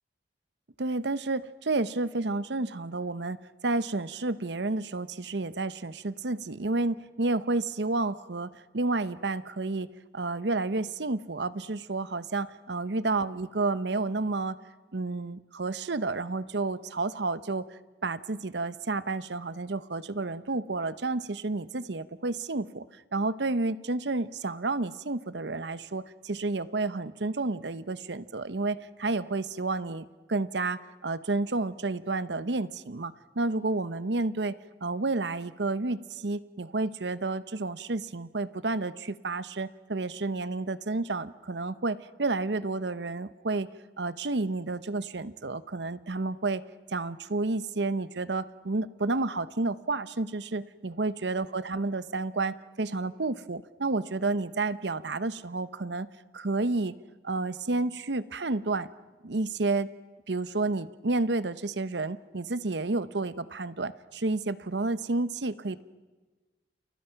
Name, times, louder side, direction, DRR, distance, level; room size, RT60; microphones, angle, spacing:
voice 1, 0.8-3.4 3.6-9.9 10.1-14.6 14.9-17.7 18.0-22.9 23.1-43.7 44.0-46.6 46.9-56.1 56.3-56.9 57.2-58.9 59.2-59.9 60.3-65.8, right 3 dB, 80° right, 15 dB, 0.9 m, -30 dB
29.5 x 29.0 x 5.9 m, 1.3 s
head